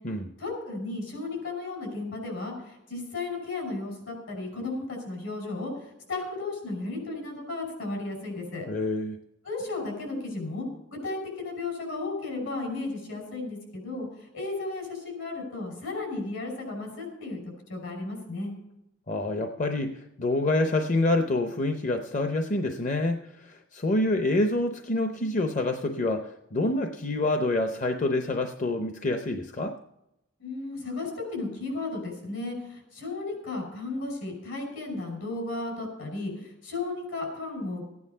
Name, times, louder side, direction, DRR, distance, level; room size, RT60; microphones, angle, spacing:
voice 1, 0.4-8.7 9.4-10.7 11.0-17.4 17.7-18.5 30.4-37.8, left 3 dB, 70° left, 2 dB, 5.7 m, -34 dB
voice 2, 8.7-9.2 19.1-29.8, left 2 dB, 40° left, 5 dB, 0.7 m, -27 dB
15.0 x 9.6 x 5.6 m, 0.85 s
head